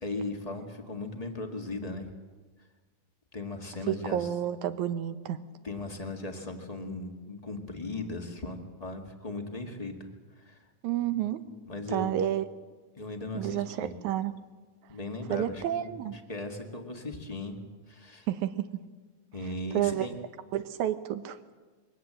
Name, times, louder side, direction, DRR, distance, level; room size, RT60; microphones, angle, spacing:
voice 1, 0.0-2.1 3.3-4.3 5.6-10.6 11.7-12.2 13.0-13.9 14.9-17.6 17.9-18.3 19.3-20.1, left 2 dB, 15° left, 4 dB, 1.5 m, -38 dB
voice 2, 3.9-5.4 10.8-11.4 11.9-12.4 13.4-14.3 15.3-16.2 18.3-18.8 19.7-20.1 20.5-21.4, right 11 dB, 85° right, 11 dB, 2.4 m, -30 dB
22.5 x 18.0 x 7.6 m, 1.3 s
omnidirectional pair, 3.3 m